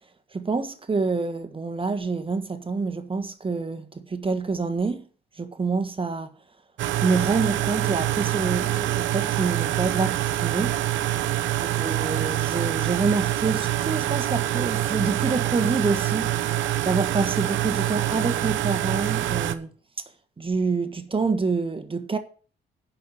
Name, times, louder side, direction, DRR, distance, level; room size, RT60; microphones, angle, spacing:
voice 1, 0.3-5.0 5.3-6.3 7.0-11.2 11.8-19.7 20.4-22.2, right 4 dB, 25° right, 1.5 m, -27 dB
sound 1, 6.8-19.5, right 13 dB, 80° right, 0.8 m, -25 dB
10.5 x 5.7 x 7.2 m
cardioid pair, 75°, 19 cm